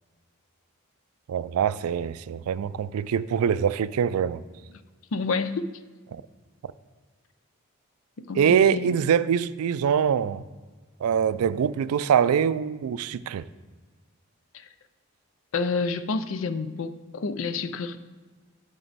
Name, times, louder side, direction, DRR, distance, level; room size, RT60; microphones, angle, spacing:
voice 1, 1.3-4.4 6.1-6.2 8.3-10.4 11.0-13.4, right 7 dB, 90° right, 0.3 m, -24 dB
voice 2, 5.1-5.6 8.2-8.9 14.5-14.7 15.5-18.0, left 4 dB, 65° left, 0.4 m, -29 dB
7.7 x 7.4 x 4.0 m
head